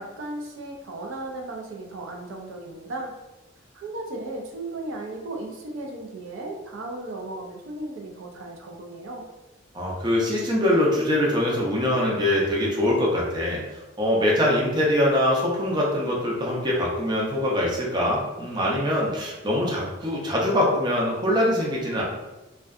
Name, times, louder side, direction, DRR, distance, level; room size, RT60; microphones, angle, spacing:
voice 1, 0.0-3.1 3.7-9.3, right 2 dB, 85° right, 1 dB, 0.5 m, -35 dB
voice 2, 9.7-22.0, left 1 dB, 20° right, -3 dB, 0.5 m, -23 dB
2.6 x 2.2 x 2.3 m, 1.0 s
head